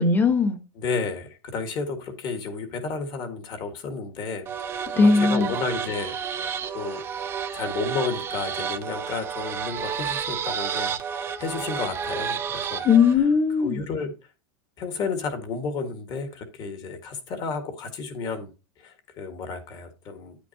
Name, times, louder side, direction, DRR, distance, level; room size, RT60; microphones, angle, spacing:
voice 1, 0.0-0.6 4.9-5.5 12.8-13.8, left 5 dB, 15° left, 1.1 m, -19 dB
voice 2, 0.8-6.1 6.7-7.0 7.5-12.9 13.6-14.1 14.8-18.5 18.8-20.4, left 4 dB, 30° left, 1.6 m, -32 dB
sound 1, 4.5-13.2, right 7 dB, 15° right, 0.6 m, -31 dB
9.8 x 8.3 x 2.8 m
supercardioid pair, 170°, 14 cm